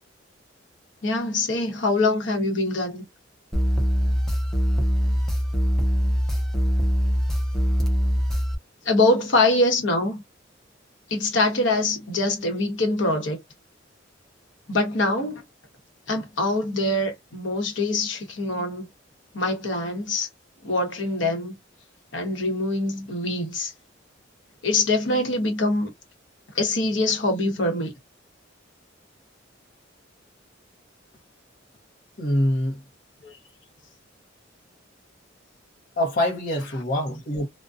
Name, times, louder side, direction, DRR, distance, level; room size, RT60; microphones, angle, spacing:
voice 1, 1.0-3.0 8.8-10.2 11.1-13.4 14.7-15.4 16.1-18.9 19.3-20.3 20.6-21.6 22.1-23.7 24.6-25.9 26.5-27.9 33.2-33.4, left 2 dB, 70° left, 1.0 m, -24 dB
sound 1, 3.5-8.6, equal, ahead, 0.6 m, -22 dB
voice 2, 32.2-32.8 36.0-37.5, left 1 dB, 45° left, 0.7 m, -24 dB
2.5 x 2.2 x 2.3 m
head